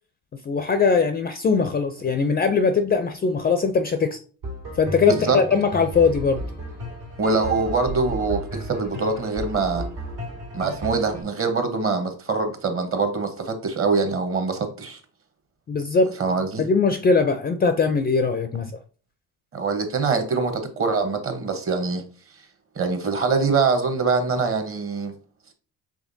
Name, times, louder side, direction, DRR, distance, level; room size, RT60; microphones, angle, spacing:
voice 1, 0.5-4.2 4.8-6.4 15.7-16.1 16.6-18.7, left 4 dB, 25° left, 0.4 m, -21 dB
sound 1, 4.4-11.2, right 1 dB, 85° right, 2.0 m, -34 dB
voice 2, 5.1-5.4 7.2-9.8 10.5-15.0 16.2-16.6 19.5-22.0 22.7-25.1, right 4 dB, 35° right, 1.0 m, -24 dB
5.0 x 3.3 x 2.6 m
supercardioid pair, 90°, 39 cm